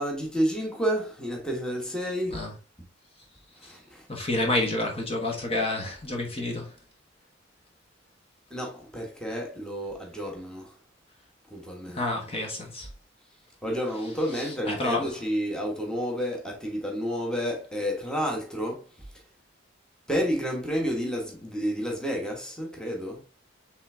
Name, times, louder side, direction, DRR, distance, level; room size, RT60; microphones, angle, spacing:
voice 1, 0.0-2.5 3.6-4.1 8.5-10.7 11.5-12.0 13.6-18.8 20.1-23.2, equal, 5° left, 1.2 m, -30 dB
voice 2, 4.1-6.7 11.9-12.9 14.6-15.1, left 2 dB, 30° left, 1.2 m, -29 dB
5.4 x 3.5 x 2.7 m
head